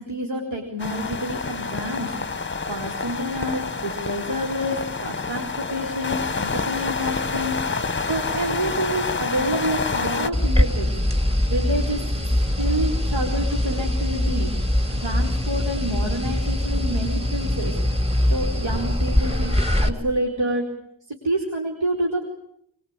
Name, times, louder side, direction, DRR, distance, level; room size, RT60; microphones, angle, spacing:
voice 1, 0.0-10.9 11.5-12.3 12.6-14.5 15.0-18.0 18.3-20.6 21.1-22.2, right 1 dB, 70° right, 0 dB, 4.7 m, -28 dB
sound 1, 0.8-10.3, left 4 dB, 25° left, 1.0 m, -28 dB
sound 2, 10.3-19.9, left 1 dB, 15° right, 2.3 m, -22 dB
24.5 x 23.0 x 9.0 m, 0.73 s
wide cardioid pair, 105°, 46 cm